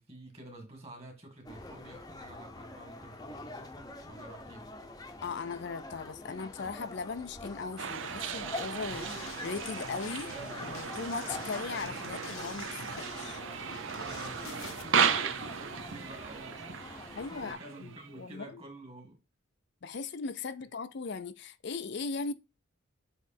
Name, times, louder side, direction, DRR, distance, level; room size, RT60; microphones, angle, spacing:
voice 1, 0.0-4.7 14.0-19.2, right 1 dB, 30° right, 1.9 m, -49 dB
sound 1, 1.4-17.5, left 2 dB, 20° left, 0.8 m, -45 dB
voice 2, 5.2-10.3 10.6-13.4 17.1-18.6 19.8-22.3, left 4 dB, 55° left, 0.5 m, -38 dB
sound 2, 7.8-18.2, right 7 dB, 65° right, 0.7 m, -35 dB
sound 3, 8.9-14.8, left 6 dB, 80° left, 1.0 m, -48 dB
8.1 x 3.2 x 4.2 m
head